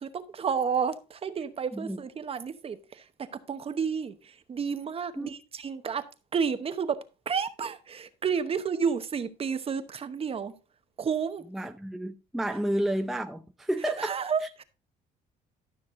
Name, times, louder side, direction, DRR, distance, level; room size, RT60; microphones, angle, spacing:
voice 1, 0.0-6.0 6.3-7.0 7.3-10.5 11.0-11.4 13.8-14.6, right 6 dB, 35° right, 1.0 m, -31 dB
voice 2, 11.5-14.2, right 1 dB, ahead, 0.5 m, -31 dB
12.5 x 6.1 x 3.7 m
cardioid pair, 110°, 17 cm